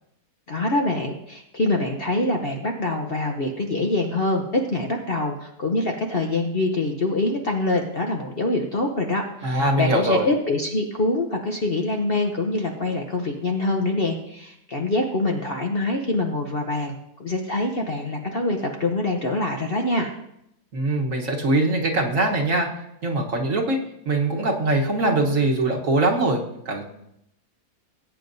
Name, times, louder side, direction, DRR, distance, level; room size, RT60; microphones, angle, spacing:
voice 1, 0.5-16.9 17.2-20.1, left 2 dB, 45° left, 2 dB, 0.9 m, -25 dB
voice 2, 9.4-10.3 20.7-22.7 23.0-23.8 24.1-26.8, right 2 dB, 55° right, 1 dB, 1.5 m, -22 dB
19.5 x 9.0 x 2.7 m, 0.79 s
omnidirectional pair, 1.8 m